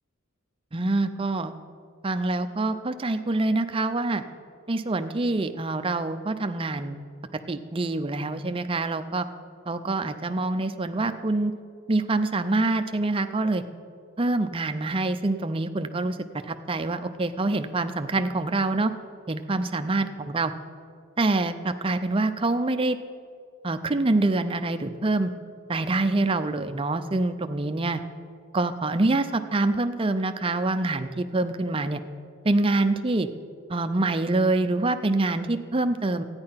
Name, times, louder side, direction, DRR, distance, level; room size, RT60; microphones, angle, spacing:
voice 1, 0.7-1.5 2.0-4.2 4.7-7.0 7.5-9.3 9.7-11.5 11.9-13.6 14.2-16.2 16.5-18.9 19.3-20.5 21.2-23.0 23.6-25.3 25.7-28.0 28.5-32.0 32.4-33.3 33.7-36.2, right 2 dB, 25° right, 9 dB, 0.5 m, -25 dB
13.5 x 9.6 x 5.7 m, 2.2 s
head